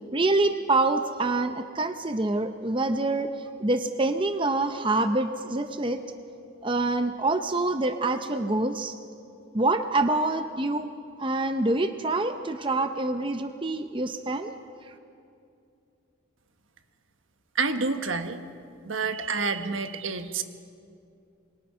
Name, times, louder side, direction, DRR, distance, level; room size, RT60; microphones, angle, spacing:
voice 1, 0.1-3.3 3.6-6.0 6.6-9.0 9.5-10.9 11.2-14.5, right 2 dB, 25° right, 8 dB, 0.7 m, -26 dB
voice 2, 17.5-18.4 18.8-20.4, right 4 dB, 70° right, 8 dB, 1.2 m, -28 dB
26.0 x 23.5 x 5.6 m, 2.5 s
head